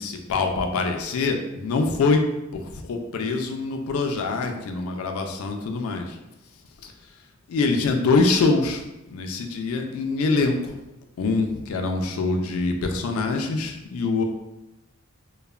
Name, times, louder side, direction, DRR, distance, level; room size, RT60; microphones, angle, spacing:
voice 1, 0.0-2.2 2.6-6.2 7.5-8.8 9.1-10.8 11.2-14.2, left 3 dB, 80° left, 4 dB, 0.3 m, -24 dB
3.1 x 2.0 x 2.3 m, 0.97 s
head